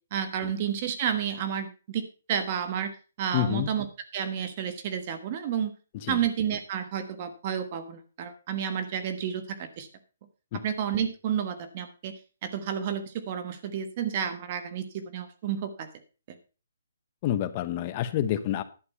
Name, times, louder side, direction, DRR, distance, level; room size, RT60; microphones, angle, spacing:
voice 1, 0.1-3.9 4.1-5.7 6.1-9.9 10.6-12.1 12.4-15.9 16.3-16.4, right 8 dB, 30° right, 9 dB, 1.3 m, -31 dB
voice 2, 3.3-3.7 6.0-6.2 10.5-10.6 17.2-18.6, left 11 dB, 25° left, 12 dB, 0.8 m, -28 dB
11.5 x 6.7 x 5.5 m, 0.34 s
hypercardioid pair, 175°, 0 cm